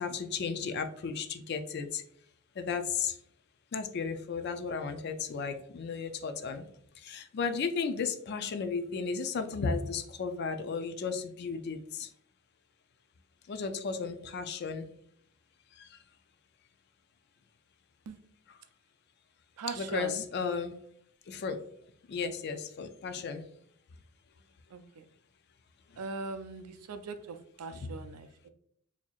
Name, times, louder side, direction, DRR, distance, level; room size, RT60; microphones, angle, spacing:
voice 1, 0.0-2.0 2.6-3.1 3.7-6.6 7.0-12.1 13.5-14.9 19.7-20.7 21.3-21.6 22.1-23.5 27.8-28.0, left 5 dB, 45° left, 8 dB, 0.3 m, -34 dB
voice 2, 19.6-20.2 24.7-25.0 26.0-28.5, right 4 dB, 85° right, 10 dB, 0.4 m, -40 dB
4.3 x 2.7 x 2.3 m, 0.64 s
head